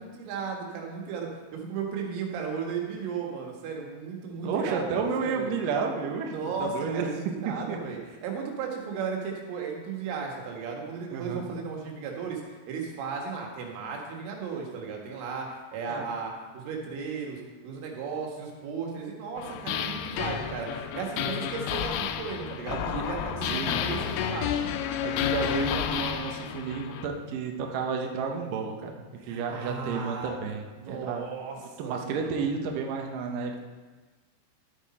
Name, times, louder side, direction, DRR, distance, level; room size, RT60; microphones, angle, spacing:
voice 1, 0.0-5.5 6.3-24.8 29.2-30.4 30.7-32.5, right 5 dB, 90° right, 0 dB, 4.2 m, -35 dB
voice 2, 4.4-7.1 7.5-7.8 11.1-11.4 15.9-16.0 22.7-23.1 23.5-23.8 25.0-28.9 29.3-31.2 31.8-33.6, right 5 dB, 75° right, 2 dB, 2.0 m, -31 dB
sound 1, 19.4-27.1, left 9 dB, 90° left, 3.2 m, -31 dB
13.0 x 8.2 x 4.3 m, 1.3 s
omnidirectional pair, 5.5 m